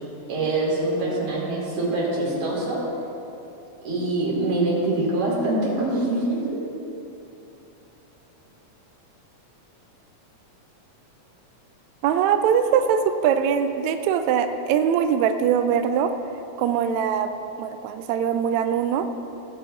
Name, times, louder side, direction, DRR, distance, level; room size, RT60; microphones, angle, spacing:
voice 1, 0.3-2.8 3.8-6.6, right 2 dB, 60° right, -6 dB, 3.9 m, -24 dB
voice 2, 12.0-16.1 16.6-17.3 17.6-19.1, right 8 dB, 85° right, 8 dB, 1.6 m, -22 dB
17.5 x 8.9 x 2.8 m, 2.8 s
omnidirectional pair, 3.7 m